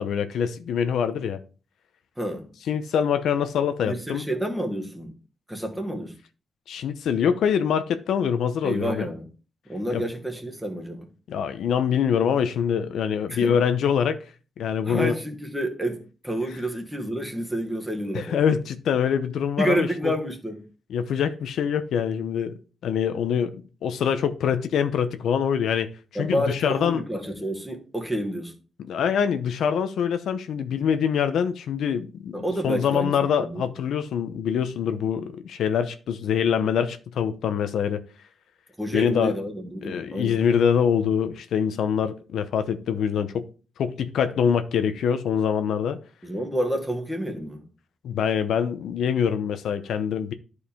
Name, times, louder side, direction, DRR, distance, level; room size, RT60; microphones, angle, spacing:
voice 1, 0.0-1.4 2.7-4.3 6.7-9.1 9.9-10.0 11.3-14.2 14.6-15.1 18.1-20.1 20.9-22.5 22.8-23.6 23.8-25.9 26.2-27.0 28.9-38.0 38.9-39.4 39.8-43.5 43.8-46.0 48.0-50.3, left 7 dB, 80° left, 0.7 m, -24 dB
voice 2, 2.2-2.5 3.8-5.1 5.5-6.1 8.6-9.3 9.7-11.1 13.3-13.5 14.8-18.4 19.6-20.6 26.1-28.5 32.3-33.1 33.4-33.6 38.8-40.4 46.2-47.6, equal, 5° right, 1.5 m, -29 dB
11.0 x 4.8 x 3.5 m
wide cardioid pair, 155°, 0 cm